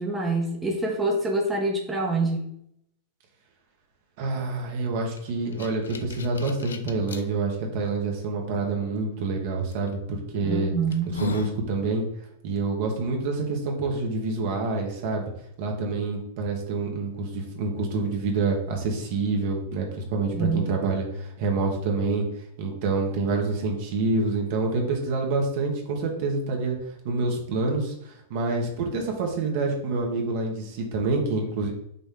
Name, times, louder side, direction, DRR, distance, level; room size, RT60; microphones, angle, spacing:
voice 1, 0.0-2.4 10.4-11.2 20.3-20.6, right 2 dB, 10° right, -2 dB, 1.0 m, -26 dB
voice 2, 4.2-10.7 11.1-12.0 12.4-15.3 15.6-22.2 22.6-26.8 27.0-31.7, right 3 dB, 55° right, 1 dB, 1.3 m, -27 dB
sound 1, 5.2-7.2 7.9-8.0 9.7-9.9 10.5-10.6 10.9-11.6, left 5 dB, 85° left, 0.5 m, -37 dB
5.4 x 2.6 x 3.7 m, 0.74 s
hypercardioid pair, 110°, 0 cm